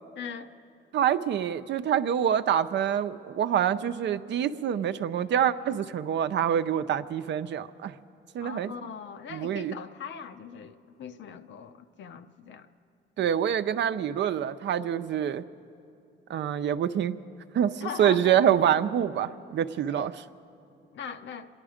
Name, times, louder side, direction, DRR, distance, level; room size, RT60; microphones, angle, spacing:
voice 1, 0.2-0.5 8.4-12.7 13.2-13.3 17.8-18.5 19.9-20.1 20.9-21.5, left 7 dB, 65° left, 9 dB, 0.8 m, -40 dB
voice 2, 0.9-7.9 8.3-8.7 9.3-9.8 13.2-15.4 16.3-17.2 17.5-20.1, right 9 dB, 65° right, 11 dB, 0.6 m, -26 dB
25.5 x 10.5 x 5.0 m, 2.6 s
cardioid pair, 90°, 20 cm